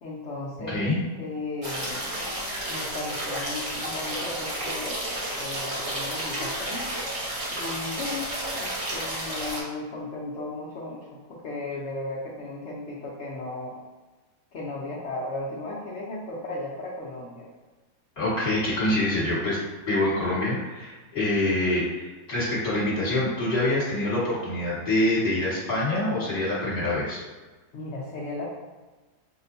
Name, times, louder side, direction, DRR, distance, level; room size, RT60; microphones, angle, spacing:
voice 1, 0.0-2.1 2.7-5.0 5.4-6.9 7.5-13.8 14.5-17.5 27.7-28.5, left 2 dB, 60° left, -6 dB, 0.8 m, -35 dB
voice 2, 0.7-1.0 18.2-19.6 19.9-27.2, left 1 dB, 35° left, -8 dB, 1.5 m, -25 dB
sound 1, 1.6-9.6, right 1 dB, 40° right, 0.4 m, -31 dB
5.7 x 2.2 x 2.6 m, 1.2 s
omnidirectional pair, 1.7 m